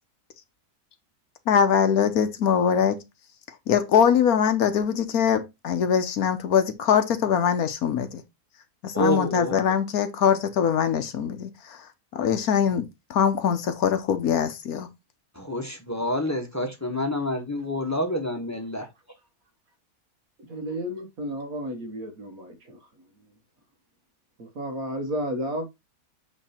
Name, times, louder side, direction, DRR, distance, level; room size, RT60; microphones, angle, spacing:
voice 1, 1.5-3.0 3.7-8.2 8.8-11.8 12.1-12.8 13.1-14.9, left 8 dB, 70° left, 1.3 m, -22 dB
voice 2, 8.9-9.6 15.4-18.9, left 1 dB, 10° left, 1.1 m, -28 dB
voice 3, 20.5-22.8 24.6-25.7, equal, 65° right, 1.8 m, -32 dB
8.2 x 3.3 x 4.3 m
omnidirectional pair, 1.6 m